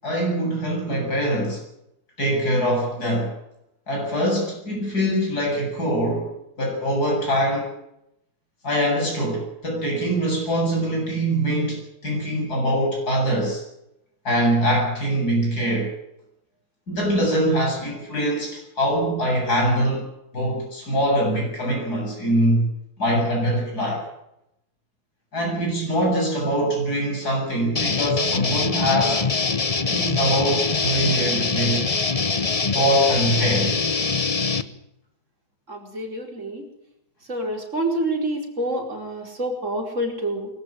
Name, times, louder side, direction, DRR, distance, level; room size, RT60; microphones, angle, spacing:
voice 1, 0.0-1.6 2.2-3.3 3.9-6.3 6.6-7.7 8.6-13.6 14.3-16.0 16.9-20.1 20.3-22.7 23.0-24.1 25.3-29.2 29.9-31.8 32.7-33.8, equal, 75° left, -1 dB, 8.7 m, -23 dB
sound 1, 27.8-34.6, left 4 dB, 25° left, 0.9 m, -23 dB
voice 2, 35.7-36.6 37.3-40.5, right 1 dB, 50° right, 2 dB, 5.1 m, -27 dB
23.5 x 14.5 x 8.6 m, 0.82 s
omnidirectional pair, 1.7 m